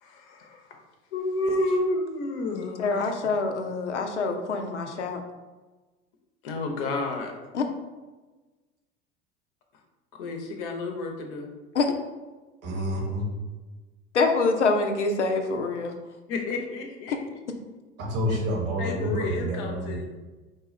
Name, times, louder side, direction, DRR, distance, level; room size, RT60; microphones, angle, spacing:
voice 1, 0.0-0.7 1.1-3.1 6.4-7.3 10.2-11.5 16.3-17.1 18.3-18.4 18.8-20.1, left 2 dB, 55° left, 2 dB, 0.7 m, -30 dB
voice 2, 2.8-5.2 7.5-7.6 11.7-11.9 14.1-15.9 17.1-17.2, left 3 dB, 85° left, 4 dB, 0.5 m, -25 dB
voice 3, 12.6-13.2 18.0-20.0, equal, 45° right, -2 dB, 1.2 m, -28 dB
4.4 x 2.3 x 3.1 m, 1.2 s
figure-of-eight pair, 70°, 34 cm